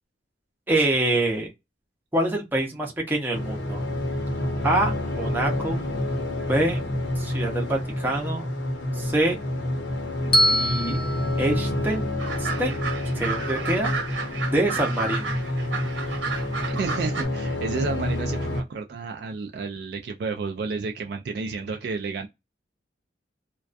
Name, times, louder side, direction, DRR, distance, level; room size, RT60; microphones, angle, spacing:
voice 1, 0.7-1.5 2.1-3.8 4.6-5.8 6.4-6.8 7.2-8.5 9.0-9.4 10.2-11.0 11.4-12.0 12.4-12.7 13.2-15.4, right 1 dB, 10° right, 0.6 m, -25 dB
sound 1, 3.3-18.6, left 1 dB, 80° left, 0.7 m, -28 dB
Bell, 10.3-12.5, equal, 30° left, 0.6 m, -25 dB
sound 2, 12.2-17.3, right 4 dB, 90° right, 1.1 m, -32 dB
voice 2, 16.7-22.3, right 4 dB, 60° right, 0.3 m, -31 dB
2.2 x 2.2 x 2.4 m
head